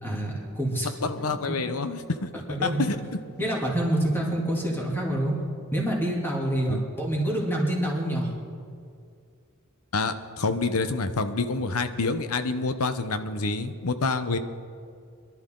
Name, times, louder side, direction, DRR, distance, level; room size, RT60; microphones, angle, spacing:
voice 1, 0.0-0.9 1.2-1.5 2.6-2.8 3.4-5.3 5.7-8.3, right 1 dB, 10° left, -3 dB, 2.8 m, -27 dB
voice 2, 1.0-2.3 2.6-3.0 6.7-6.8 9.9-14.4, left 3 dB, 85° left, 10 dB, 0.9 m, -27 dB
22.5 x 12.0 x 3.9 m, 2.3 s
head